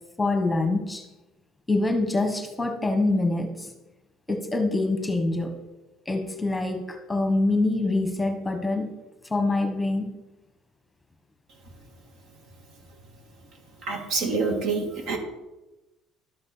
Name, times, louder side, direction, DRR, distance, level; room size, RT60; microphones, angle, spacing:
voice 1, 0.2-1.1 1.7-3.7 4.3-5.5 6.1-8.9 9.3-10.1, left 2 dB, 10° left, 6 dB, 1.2 m, -25 dB
voice 2, 13.8-15.2, right 4 dB, 60° right, 3 dB, 2.6 m, -27 dB
12.0 x 8.0 x 5.6 m, 1.0 s
cardioid pair, 140°, 0 cm